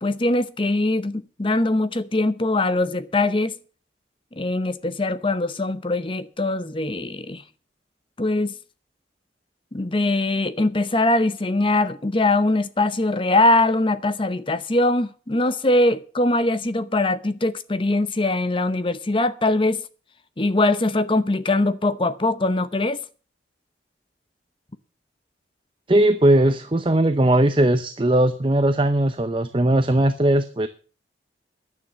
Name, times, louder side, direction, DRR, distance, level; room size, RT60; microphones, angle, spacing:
voice 1, 0.0-3.6 4.4-7.4 8.2-8.5 9.7-19.8 20.4-23.0, left 2 dB, 30° left, 0.7 m, -22 dB
voice 2, 25.9-30.7, right 1 dB, 25° right, 0.7 m, -19 dB
11.0 x 9.5 x 7.4 m
head